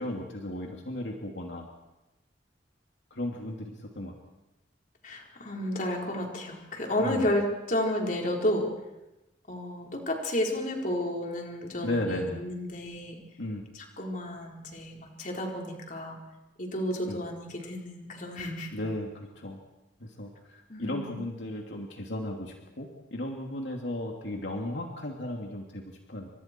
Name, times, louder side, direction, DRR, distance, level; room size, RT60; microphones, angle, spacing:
voice 1, 0.0-1.7 3.1-4.1 7.0-7.3 11.8-12.4 13.4-13.6 17.1-17.2 18.7-19.6 20.0-26.3, left 1 dB, 75° left, 0 dB, 2.8 m, -35 dB
voice 2, 5.0-8.7 9.5-13.2 13.7-16.1 16.6-18.8 20.7-21.2, left 1 dB, 45° left, 0 dB, 4.5 m, -32 dB
30.0 x 26.0 x 4.6 m, 0.98 s
head